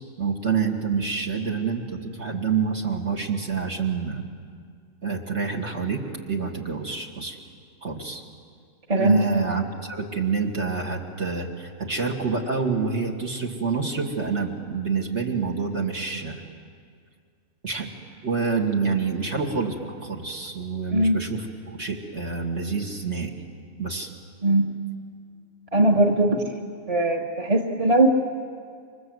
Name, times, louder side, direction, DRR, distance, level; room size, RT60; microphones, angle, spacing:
voice 1, 0.2-4.2 5.0-7.4 7.8-8.2 9.0-16.4 17.6-17.9 18.2-23.3 23.8-24.1, right 5 dB, 55° right, 0 dB, 2.5 m, -27 dB
voice 2, 8.9-9.2 20.9-21.2 24.4-24.7 25.7-26.4 26.9-28.1, right 2 dB, 25° right, 2 dB, 1.8 m, -20 dB
28.5 x 25.0 x 7.9 m, 2.1 s
omnidirectional pair, 1.5 m